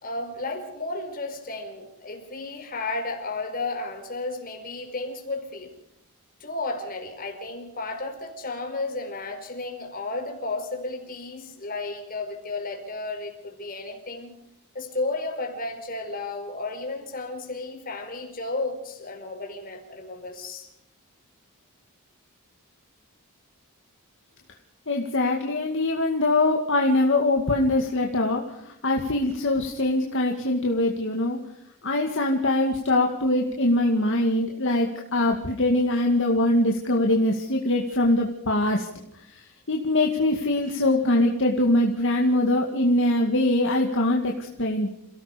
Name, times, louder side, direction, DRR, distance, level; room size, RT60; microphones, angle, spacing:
voice 1, 0.0-5.7 6.4-14.3 14.7-20.7, left 2 dB, 40° left, 5.0 m, -33 dB
voice 2, 24.9-31.4 31.8-38.9 39.3-39.4 39.7-44.9, left 1 dB, 60° left, 2.2 m, -23 dB
28.5 x 17.5 x 5.3 m
head